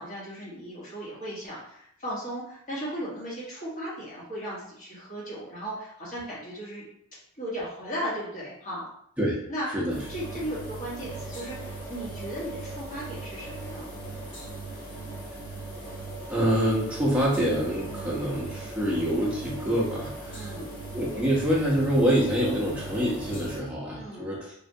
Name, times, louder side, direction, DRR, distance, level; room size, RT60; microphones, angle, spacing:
voice 1, 0.0-6.8 7.4-8.9 9.5-9.7 10.1-13.9 17.8-18.2 20.3-20.8 23.9-24.4, equal, 35° left, -7 dB, 1.3 m, -36 dB
sound 1, 9.9-23.6, right 2 dB, 50° left, 1.1 m, -39 dB
voice 2, 16.3-20.5 20.9-24.5, equal, 5° right, -5 dB, 0.7 m, -26 dB
3.3 x 2.5 x 2.6 m, 0.70 s
head